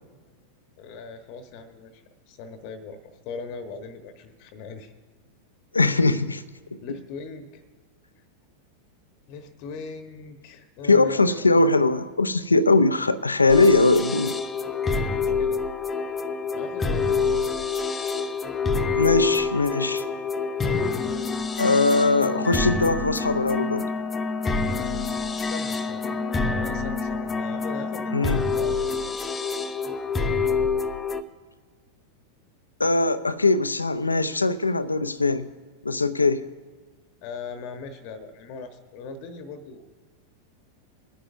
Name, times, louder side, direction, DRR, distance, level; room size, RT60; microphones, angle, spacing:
voice 1, 0.8-4.9 6.8-7.6 9.3-11.5 13.4-13.8 15.0-15.6 16.5-17.3 25.4-26.0 26.4-29.3 37.2-39.8, left 4 dB, 45° left, 9 dB, 1.1 m, -39 dB
voice 2, 5.7-6.4 6.7-6.8 10.9-14.4 18.9-20.0 20.6-20.7 21.6-23.9 28.1-28.5 32.8-35.5 35.8-36.5, left 3 dB, 80° left, 14 dB, 0.6 m, -21 dB
sound 1, 13.5-31.2, left 4 dB, 20° left, 0.7 m, -27 dB
22.0 x 10.0 x 2.6 m, 1.5 s
figure-of-eight pair, 90°, 0 cm